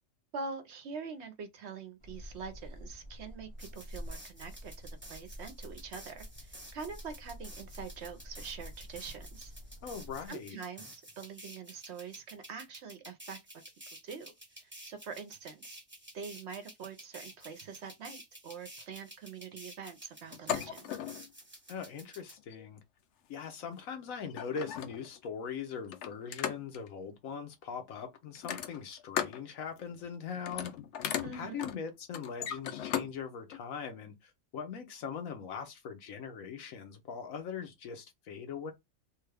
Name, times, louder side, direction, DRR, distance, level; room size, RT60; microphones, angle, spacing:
voice 1, 0.3-9.5 10.3-13.4 14.0-14.3 14.6-15.8 16.1-20.9 31.2-31.6, right 5 dB, 65° right, 0.8 m, -44 dB
sound 1, 2.0-10.3, equal, 35° left, 0.5 m, -48 dB
sound 2, 3.6-22.3, right 1 dB, 10° right, 0.8 m, -52 dB
voice 2, 9.8-10.6 21.7-22.8 23.3-30.7 31.3-38.7, left 6 dB, 85° left, 1.3 m, -41 dB
sound 3, 20.3-21.3 22.4-22.6 23.8-23.9 24.3-25.2 25.9-26.9 28.3-29.4 29.8-30.1 30.4-33.1 33.5-33.6, left 9 dB, 70° left, 0.8 m, -37 dB
3.4 x 2.3 x 3.3 m
omnidirectional pair, 1.4 m